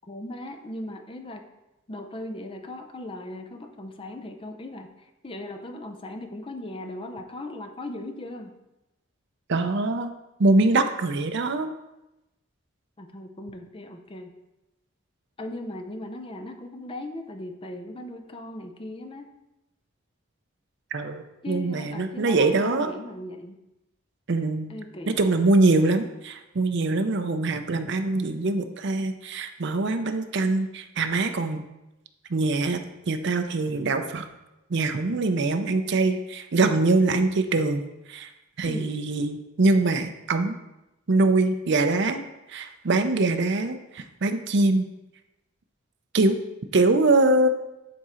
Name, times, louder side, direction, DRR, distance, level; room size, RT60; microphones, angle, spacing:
voice 1, 0.1-1.5 1.9-8.5 13.0-14.3 15.4-19.3 21.4-23.6 24.7-25.5 38.7-38.9, left 1 dB, 25° left, 5 dB, 0.6 m, -38 dB
voice 2, 9.5-10.1 10.4-11.7 20.9-22.9 24.3-24.7 25.0-31.6 32.3-32.8 33.1-34.3 34.7-37.8 38.1-38.3 38.6-40.6 41.1-42.2 42.5-44.9 46.1-46.4 46.7-47.5, right 2 dB, 55° right, 7 dB, 0.6 m, -23 dB
10.0 x 3.7 x 4.3 m, 0.96 s
head